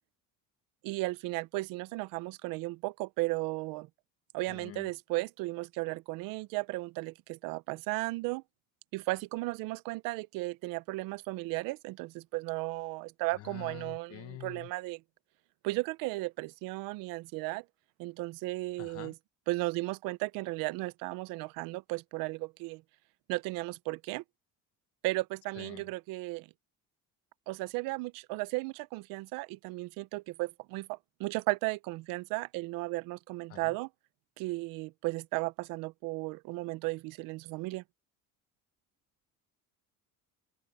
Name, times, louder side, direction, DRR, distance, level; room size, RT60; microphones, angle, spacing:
voice 1, 0.8-3.9 4.3-8.4 8.9-15.0 15.6-17.6 18.0-19.1 19.5-22.8 23.3-24.2 25.0-26.5 27.5-33.9 34.4-37.8, right 22 dB, 85° right, 0.7 m, -35 dB
voice 2, 4.5-4.9 13.3-14.7 18.8-19.1 25.6-25.9 33.5-33.7, left 15 dB, 45° left, 0.9 m, -46 dB
open air
cardioid pair, 165°, 33 cm